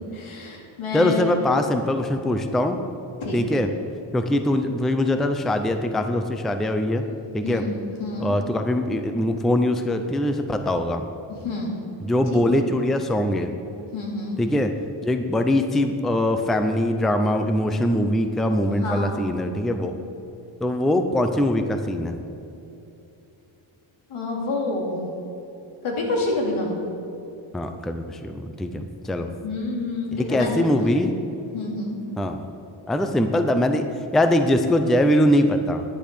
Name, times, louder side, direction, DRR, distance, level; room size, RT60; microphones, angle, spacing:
voice 1, 0.1-1.3 3.2-3.6 7.4-8.3 11.3-11.8 12.3-12.7 13.9-14.4 18.8-19.2 24.1-25.0 25.8-26.8 29.4-30.5 31.5-32.0, left 2 dB, 85° left, -1 dB, 2.9 m, -28 dB
voice 2, 0.9-2.8 3.3-3.7 4.1-7.1 7.3-7.7 8.2-11.1 12.0-13.5 14.4-14.7 15.0-19.9 20.6-22.1 27.5-29.3 30.2-31.1 32.2-32.4 32.9-35.8, left 1 dB, ahead, 7 dB, 0.5 m, -22 dB
10.5 x 10.5 x 6.8 m, 2.8 s
wide cardioid pair, 170°, 48 cm